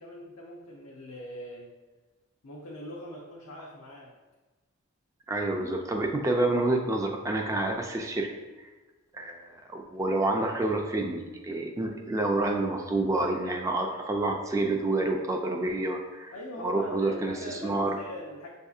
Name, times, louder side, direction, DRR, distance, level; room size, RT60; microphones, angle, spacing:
voice 1, 0.0-1.8 2.4-4.1 16.3-18.5, left 1 dB, 85° left, -2 dB, 0.6 m, -42 dB
voice 2, 5.3-8.3 8.6-8.7 9.1-16.3 16.6-17.9, right 2 dB, 15° right, 2 dB, 0.3 m, -28 dB
6.8 x 2.7 x 2.4 m, 1.3 s
head